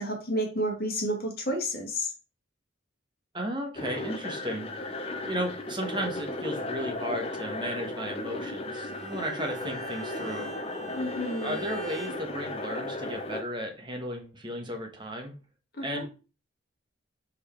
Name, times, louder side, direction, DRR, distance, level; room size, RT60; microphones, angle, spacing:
voice 1, 0.0-2.1 10.9-11.6 15.8-16.0, equal, 50° left, 1 dB, 1.9 m, -30 dB
voice 2, 3.3-10.6 11.2-15.3 15.8-16.0, equal, 25° right, 2 dB, 1.4 m, -35 dB
sound 1, 3.7-13.4, left 2 dB, 30° left, 0.7 m, -35 dB
Bowed string instrument, 8.6-12.3, right 8 dB, 40° right, 2.2 m, -43 dB
5.1 x 4.8 x 4.5 m, 0.34 s
head